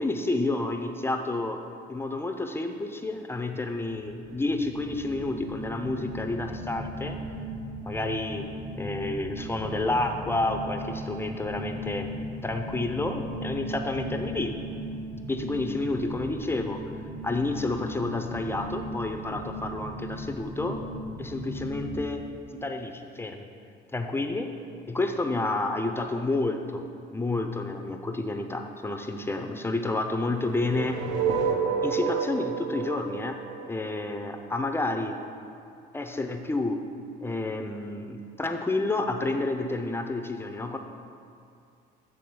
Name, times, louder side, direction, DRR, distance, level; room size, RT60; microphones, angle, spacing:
voice 1, 0.0-1.6 1.9-7.2 7.9-8.5 8.8-12.1 12.4-14.5 15.3-16.8 17.2-20.8 21.2-22.2 22.6-23.5 23.9-24.5 24.9-26.8 27.1-31.0 31.8-35.2 35.9-36.8 37.2-40.8, left 2 dB, 10° left, 5 dB, 0.4 m, -30 dB
sound 1, 3.9-22.1, equal, 25° right, 0.9 m, -37 dB
sound 2, 30.3-34.4, right 6 dB, 70° right, 0.8 m, -29 dB
9.3 x 3.5 x 6.8 m, 2.4 s
cardioid pair, 130°, 19 cm